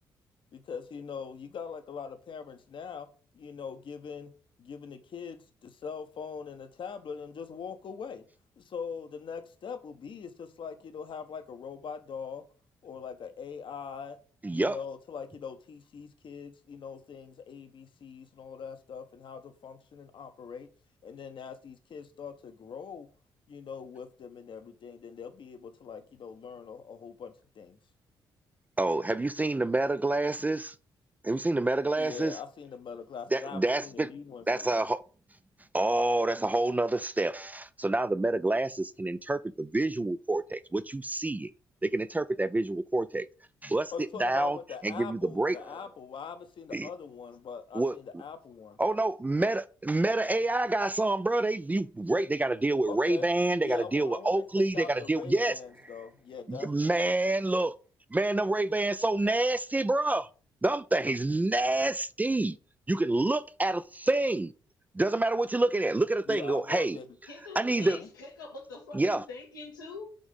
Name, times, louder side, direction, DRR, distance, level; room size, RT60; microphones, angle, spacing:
voice 1, 0.5-3.1 3.3-4.3 4.6-8.2 8.6-12.5 12.8-14.2 14.5-20.7 21.0-23.1 23.5-27.8 32.0-34.9 43.9-48.8 52.9-53.3 53.6-56.9 66.3-67.1 67.7-68.1, left 6 dB, 50° left, 0.8 m, -42 dB
voice 2, 14.4-14.8 28.8-30.7 31.2-32.4 33.3-34.1 34.5-35.0 35.7-41.5 41.8-43.3 43.6-43.9 44.2-44.6 44.8-45.6 46.7-46.9 47.7-47.9 48.8-55.5 56.5-57.7 58.1-60.3 60.6-62.6 62.9-64.5 64.9-67.0 67.6-68.0 68.9-69.2, right 2 dB, 15° right, 0.4 m, -27 dB
voice 3, 67.3-70.2, left 3 dB, 90° left, 1.1 m, -44 dB
5.2 x 3.6 x 5.1 m
hypercardioid pair, 40°, 11 cm